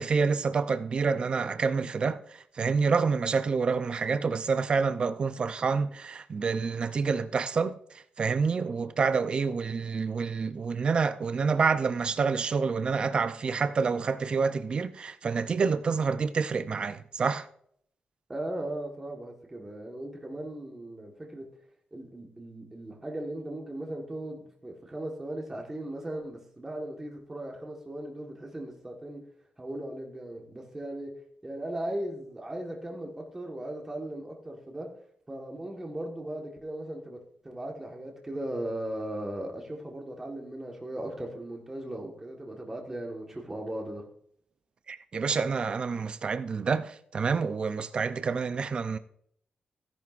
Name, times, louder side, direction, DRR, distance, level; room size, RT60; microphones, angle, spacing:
voice 1, 0.0-2.2 2.6-7.7 8.2-17.5 44.9-49.0, right 5 dB, 35° right, 0.5 m, -28 dB
voice 2, 18.3-21.5 21.9-29.3 29.6-35.0 35.3-44.0, right 1 dB, 15° right, 1.4 m, -38 dB
16.5 x 10.5 x 2.5 m
wide cardioid pair, 180°, 3 cm